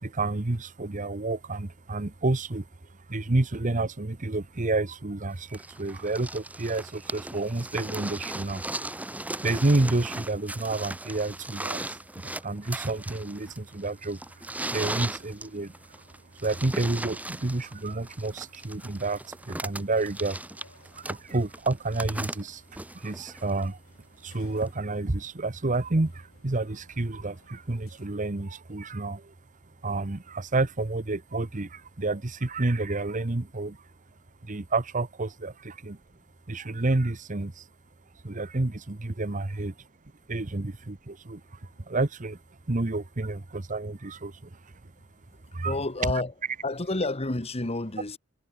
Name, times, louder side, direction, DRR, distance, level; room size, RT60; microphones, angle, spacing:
voice 1, 0.0-2.7 3.1-8.6 9.4-14.2 14.7-16.0 16.4-20.4 20.7-23.8 24.2-29.3 29.8-33.8 34.4-36.0 36.5-37.7 38.2-39.7 40.3-42.4 42.7-44.7 45.5-45.7, right 2 dB, 35° right, 1.0 m, -30 dB
sound 1, 5.5-23.6 24.7-24.8, right 1 dB, 5° right, 1.9 m, -37 dB
sound 2, 13.0-28.1, left 3 dB, 85° left, 7.0 m, -63 dB
voice 2, 45.6-46.3 46.6-48.2, left 2 dB, 30° left, 1.5 m, -29 dB
head